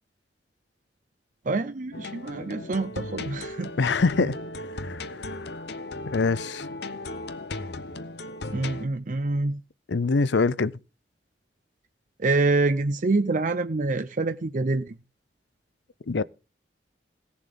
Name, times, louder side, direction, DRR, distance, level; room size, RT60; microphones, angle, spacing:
voice 1, 1.4-4.0 8.5-9.6 12.2-15.0, right 3 dB, 50° right, 0.6 m, -26 dB
sound 1, 1.9-8.9, left 2 dB, 65° left, 0.9 m, -36 dB
voice 2, 3.8-4.3 4.8-5.4 6.1-6.7 9.9-10.7 16.1-16.2, left 4 dB, 90° left, 0.6 m, -24 dB
17.0 x 7.2 x 5.2 m
head